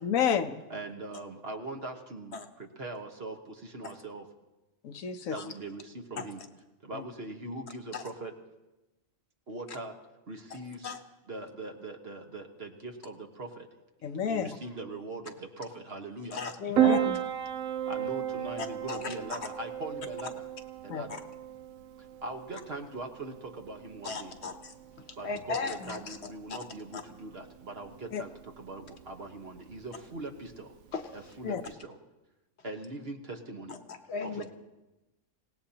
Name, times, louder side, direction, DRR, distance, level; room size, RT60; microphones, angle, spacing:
voice 1, 0.0-0.6 4.8-5.4 6.9-7.0 14.0-14.5 16.8-17.0 20.9-21.0 28.1-28.2 31.4-31.6, left 8 dB, 85° left, 8 dB, 1.2 m, -29 dB
voice 2, 0.7-4.3 5.3-6.4 6.8-8.3 9.5-9.9 10.3-10.9 11.3-13.7 14.3-16.4 17.9-20.5 20.8-21.2 22.0-24.3 25.2-30.7 31.1-32.0 32.6-33.8 34.2-34.5, right 2 dB, 50° right, 3 dB, 1.5 m, -41 dB
voice 3, 16.3-17.2 18.6-19.1 21.1-21.2 24.0-24.7 25.2-26.2 26.9-27.0 30.9-31.0 33.9-34.5, left 4 dB, 55° left, 7 dB, 1.2 m, -36 dB
Piano, 16.7-31.7, right 11 dB, 85° right, 1.2 m, -35 dB
27.0 x 17.5 x 2.9 m, 1.0 s
omnidirectional pair, 1.4 m